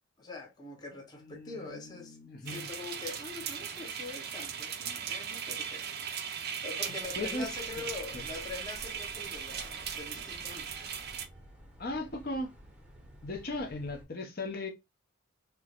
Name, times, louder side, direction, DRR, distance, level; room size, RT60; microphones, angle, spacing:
voice 1, 0.2-2.2 2.4-5.9 6.2-10.7, left 3 dB, 20° left, 0.8 m, -44 dB
voice 2, 1.1-2.7 7.2-7.8 8.1-8.3 11.8-12.5 13.2-14.7, left 2 dB, 45° left, 0.8 m, -38 dB
sound 1, 2.5-11.3, right 7 dB, 50° right, 0.4 m, -38 dB
sound 2, 7.0-14.0, equal, 5° right, 0.7 m, -53 dB
4.4 x 2.2 x 2.3 m
head